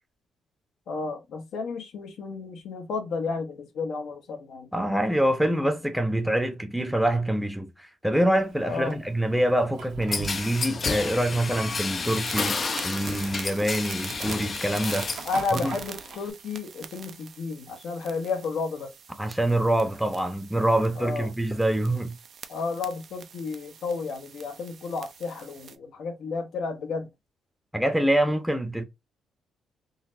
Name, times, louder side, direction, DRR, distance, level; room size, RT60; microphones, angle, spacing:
voice 1, 0.9-4.7 8.7-9.0 15.2-18.9 21.0-21.3 22.5-27.1, left 4 dB, 70° left, 0.8 m, -32 dB
voice 2, 4.7-15.1 15.5-15.8 19.2-22.1 27.7-28.8, right 1 dB, ahead, 0.7 m, -25 dB
Fire, 8.3-16.2, right 5 dB, 80° right, 1.1 m, -45 dB
sound 1, 10.1-15.3 15.7-16.3, left 4 dB, 40° left, 0.4 m, -31 dB
sound 2, 12.1-25.8, right 7 dB, 55° right, 0.5 m, -44 dB
3.9 x 2.0 x 2.5 m
cardioid pair, 90°, 0 cm